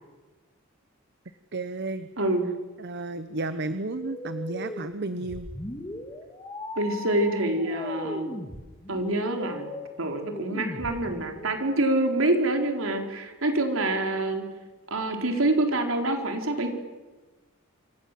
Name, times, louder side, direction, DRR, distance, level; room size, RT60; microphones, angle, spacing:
voice 1, 1.5-2.1 2.8-5.5, right 2 dB, 55° right, 11 dB, 1.1 m, -32 dB
voice 2, 2.2-2.5 6.8-8.4 8.9-9.7 10.0-14.5 14.9-16.8, right 2 dB, 70° right, 4 dB, 4.4 m, -26 dB
sound 1, 3.9-11.5, left 1 dB, 20° left, 2.8 m, -38 dB
28.5 x 26.5 x 7.8 m, 1.2 s
head